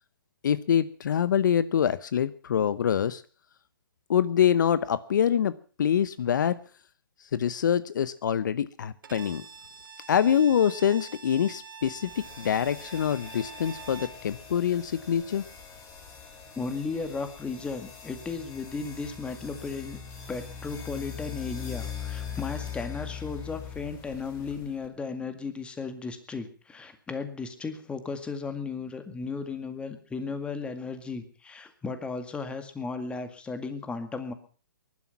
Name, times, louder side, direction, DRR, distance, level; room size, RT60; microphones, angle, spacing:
voice 1, 0.4-3.2 4.1-5.5 5.8-6.6 7.2-9.5 10.1-12.1 12.4-15.4, left 8 dB, 60° left, 16 dB, 0.9 m, -25 dB
Bowed string instrument, 9.0-14.2, right 5 dB, 70° right, 1.8 m, -45 dB
sound 1, 12.0-24.9, left 7 dB, 25° left, 5.8 m, -41 dB
voice 2, 16.6-20.0 20.3-34.3, left 4 dB, 10° left, 9 dB, 2.0 m, -35 dB
21.0 x 12.0 x 5.8 m, 0.41 s
hypercardioid pair, 135°, 11 cm